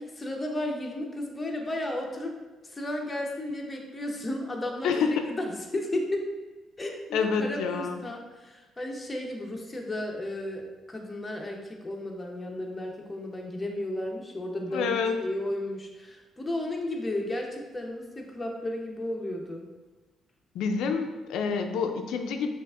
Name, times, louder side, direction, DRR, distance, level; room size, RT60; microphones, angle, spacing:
voice 1, 0.0-2.3 2.6-6.3 6.8-19.6, left 1 dB, 20° left, 0 dB, 0.7 m, -34 dB
voice 2, 4.8-5.3 7.1-8.0 14.7-15.2 20.5-22.6, left 5 dB, 85° left, 6 dB, 0.3 m, -28 dB
5.9 x 2.4 x 2.4 m, 1.2 s
cardioid pair, 90°, 0 cm